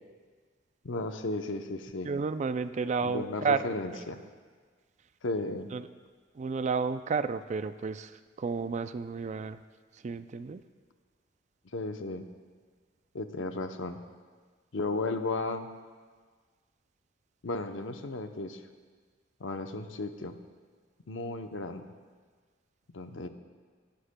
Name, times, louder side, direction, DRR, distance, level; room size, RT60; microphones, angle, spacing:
voice 1, 0.8-2.1 3.0-4.2 5.2-5.7 11.7-12.3 13.1-14.0 14.7-15.7 17.4-18.6 19.4-20.4 21.1-21.9 22.9-23.3, left 2 dB, 85° left, 7 dB, 0.7 m, -34 dB
voice 2, 2.0-3.6 3.9-4.0 5.7-5.9 6.3-9.6 9.9-10.6, right 5 dB, 40° right, 12 dB, 0.3 m, -31 dB
20.0 x 11.5 x 2.2 m, 1.5 s
head